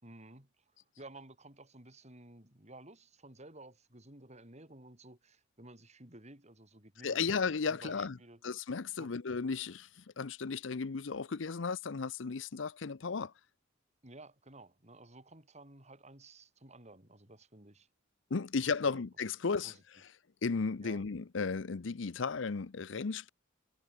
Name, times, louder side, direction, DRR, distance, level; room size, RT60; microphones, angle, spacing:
voice 1, 0.0-7.3 7.6-8.4 9.0-9.1 14.0-17.9 18.8-19.0 19.6-19.8 20.8-21.1, right 2 dB, 35° right, 5.1 m, -54 dB
voice 2, 7.0-8.2 8.4-13.3 18.3-19.7 20.4-23.3, left 5 dB, 70° left, 0.6 m, -34 dB
head